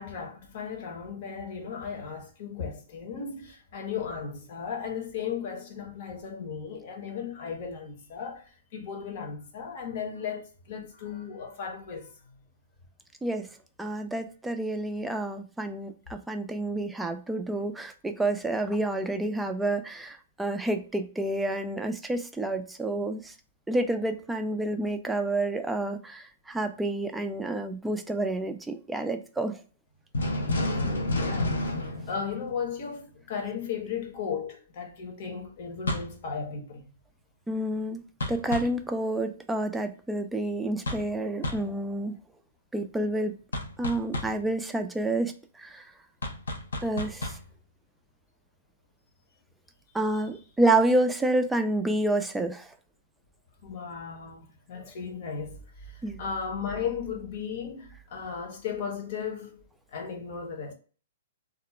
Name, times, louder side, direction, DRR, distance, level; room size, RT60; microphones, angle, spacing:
voice 1, 0.0-8.4 8.7-12.1 30.6-31.5 31.8-36.8 50.1-50.2 53.6-55.6 55.9-59.6 59.9-60.7, left 6 dB, 55° left, 0.8 m, -36 dB
voice 2, 13.8-23.3 23.7-29.5 37.5-38.0 38.3-42.1 42.7-43.3 43.8-45.3 45.6-45.8 46.8-47.3 49.9-52.7 56.0-56.2, right 2 dB, 5° right, 0.3 m, -29 dB
sound 1, 30.1-33.0 35.9-36.2 38.2-38.8 40.9-41.2 41.4-41.7 43.5-44.4 46.2-47.5, left 1 dB, 90° left, 0.5 m, -31 dB
2.4 x 2.0 x 2.9 m
hypercardioid pair, 135°, 0 cm